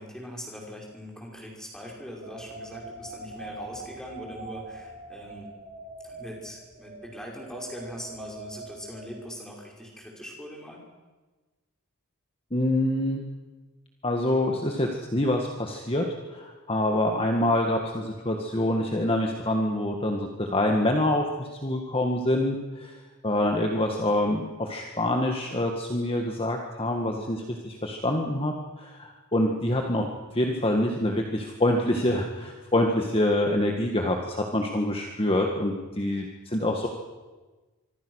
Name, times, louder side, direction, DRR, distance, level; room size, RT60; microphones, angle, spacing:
voice 1, 0.0-5.5 6.0-10.8, equal, 5° left, -1 dB, 5.4 m, -41 dB
sound 1, 2.2-9.5, right 3 dB, 35° right, 4.1 m, -43 dB
voice 2, 12.5-13.2 14.0-16.1 16.3-36.9, left 1 dB, 25° left, 2 dB, 1.8 m, -26 dB
25.5 x 25.0 x 6.5 m, 1.3 s
head